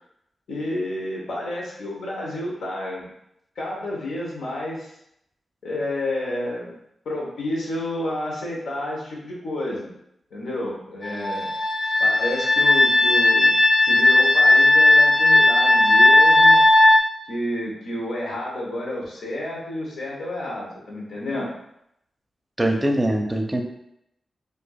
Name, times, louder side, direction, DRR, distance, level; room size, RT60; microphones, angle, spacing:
voice 1, 0.5-3.0 3.6-4.9 5.6-6.7 7.0-9.9 10.3-11.5 12.0-13.5 13.8-16.6 17.3-21.5, left 1 dB, 85° left, -3 dB, 1.0 m, -30 dB
sound 1, 11.0-17.0, left 2 dB, 35° left, 0.4 m, -16 dB
voice 2, 22.6-23.6, right 1 dB, 15° right, 3 dB, 0.6 m, -22 dB
4.4 x 2.6 x 2.4 m, 0.79 s
cardioid pair, 70°, 0 cm